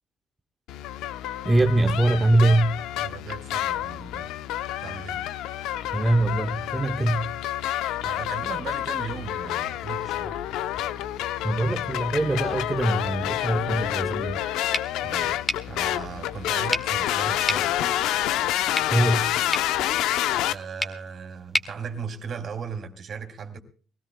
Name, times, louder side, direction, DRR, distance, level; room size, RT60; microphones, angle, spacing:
sound 1, 0.7-20.5, left 12 dB, 80° left, 0.7 m, -28 dB
voice 1, 1.4-2.8 5.9-7.4 11.4-14.4 18.9-19.4, right 2 dB, 15° right, 0.8 m, -23 dB
voice 2, 3.0-4.3 4.8-5.2 8.0-10.5 15.0-15.4 15.7-18.0 20.5-23.6, right 6 dB, 45° right, 2.7 m, -37 dB
sound 2, 14.7-22.8, left 1 dB, 15° left, 1.8 m, -34 dB
22.5 x 17.0 x 2.2 m
cardioid pair, 120°, 0 cm